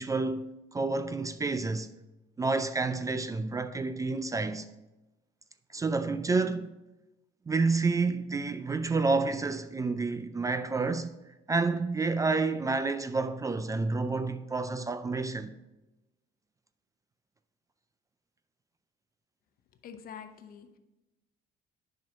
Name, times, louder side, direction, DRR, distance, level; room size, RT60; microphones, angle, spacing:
voice 1, 0.0-1.9 2.4-4.7 5.7-6.7 7.5-11.1 11.5-15.6, right 3 dB, 20° right, 0.4 m, -29 dB
voice 2, 19.8-20.8, left 7 dB, 60° left, 0.8 m, -46 dB
7.5 x 5.6 x 5.1 m
cardioid pair, 110°, 17 cm